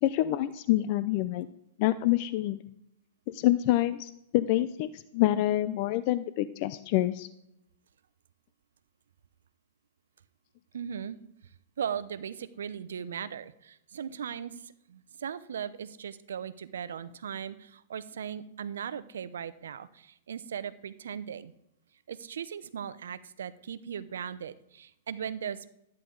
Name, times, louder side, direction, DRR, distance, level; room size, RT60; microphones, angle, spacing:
voice 1, 0.0-1.5 1.8-2.6 3.3-7.3, left 15 dB, 50° left, 14 dB, 0.5 m, -27 dB
voice 2, 10.7-11.2 11.8-21.5 22.1-25.7, right 8 dB, 85° right, 15 dB, 0.7 m, -38 dB
13.0 x 9.8 x 3.9 m, 0.81 s
hypercardioid pair, 130°, 0 cm